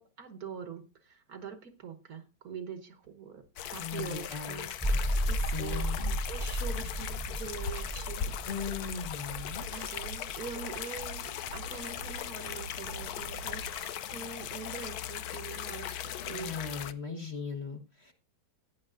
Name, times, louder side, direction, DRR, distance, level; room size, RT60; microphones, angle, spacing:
voice 1, 0.0-3.4 3.7-4.7 5.3-8.8 9.7-16.6, right 6 dB, 55° right, 8 dB, 1.4 m, -44 dB
sound 1, 3.6-16.9, left 10 dB, 70° left, 0.9 m, -39 dB
voice 2, 3.8-4.7 5.5-6.1 8.4-9.6 16.2-18.1, left 6 dB, 35° left, 4 dB, 1.4 m, -39 dB
sound 2, 4.7-11.1, equal, 10° right, 0.4 m, -34 dB
sound 3, 6.0-14.0, right 6 dB, 75° right, 1.4 m, -47 dB
15.5 x 9.4 x 2.5 m, 0.29 s
omnidirectional pair, 2.2 m